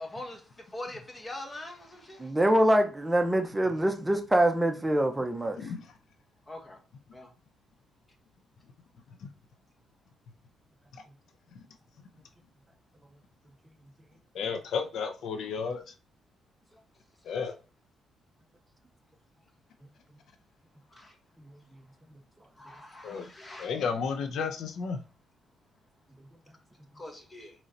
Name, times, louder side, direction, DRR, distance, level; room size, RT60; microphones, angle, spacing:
voice 1, 0.0-2.3 6.5-6.8 7.1-7.3 20.9-21.2 22.6-23.7 26.9-27.5, left 1 dB, 20° left, 1.2 m, -43 dB
voice 2, 2.2-5.6, right 1 dB, 15° right, 0.6 m, -24 dB
voice 3, 14.3-15.9 17.2-17.5 23.0-23.3 23.6-25.0, left 5 dB, 70° left, 0.5 m, -33 dB
4.0 x 3.1 x 3.8 m
cardioid pair, 90°, 0 cm